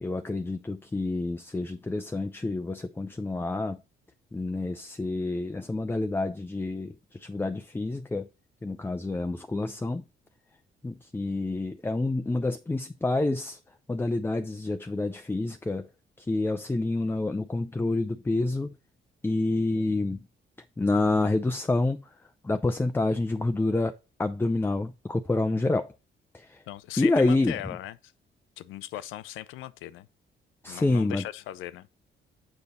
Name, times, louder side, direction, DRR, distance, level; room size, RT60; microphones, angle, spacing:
voice 1, 0.0-3.8 4.3-8.3 8.6-10.0 10.8-13.6 13.9-15.9 16.2-18.7 19.2-20.2 20.8-22.0 22.4-23.9 24.2-25.9 26.3-26.6 27.0-27.5 30.6-31.2, left 2 dB, 10° left, 0.5 m, -28 dB
voice 2, 26.7-28.1 28.6-30.1 30.7-31.9, left 13 dB, 90° left, 0.5 m, -39 dB
6.9 x 5.3 x 4.1 m
cardioid pair, 90°, 20 cm